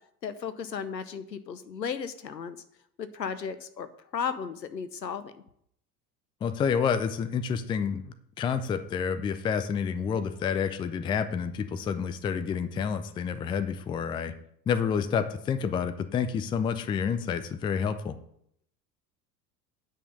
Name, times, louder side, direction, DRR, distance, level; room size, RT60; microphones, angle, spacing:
voice 1, 0.2-2.6 3.0-5.3, left 6 dB, 85° left, 12 dB, 0.8 m, -35 dB
voice 2, 6.4-14.3 14.7-18.2, left 6 dB, 10° left, 11 dB, 0.4 m, -29 dB
9.2 x 5.6 x 6.4 m, 0.70 s
figure-of-eight pair, 75°, 50 cm